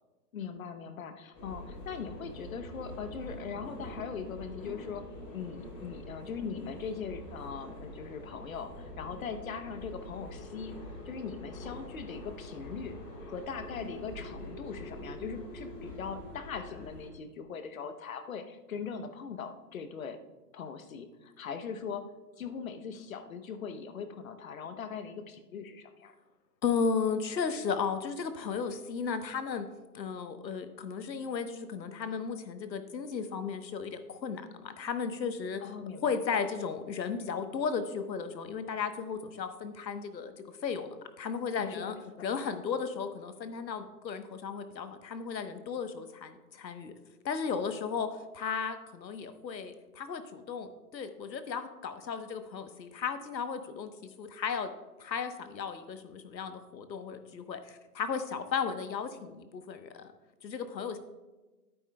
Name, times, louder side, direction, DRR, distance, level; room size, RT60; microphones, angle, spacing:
voice 1, 0.3-5.0 5.3-10.7 11.1-13.0 13.3-20.2 20.5-22.1 22.4-26.1 35.6-36.1 41.7-42.3, left 6 dB, 55° left, 9 dB, 0.9 m, -40 dB
sound 1, 1.3-17.1, left 1 dB, 25° left, 2.9 m, -45 dB
voice 2, 26.6-29.7 29.9-35.6 35.9-40.3 40.6-42.0 42.2-46.9 47.2-48.1 48.3-54.7 55.0-60.1 60.4-61.0, left 6 dB, 90° left, 9 dB, 1.1 m, -35 dB
11.0 x 9.1 x 2.2 m, 1.2 s
hypercardioid pair, 160°, 50 cm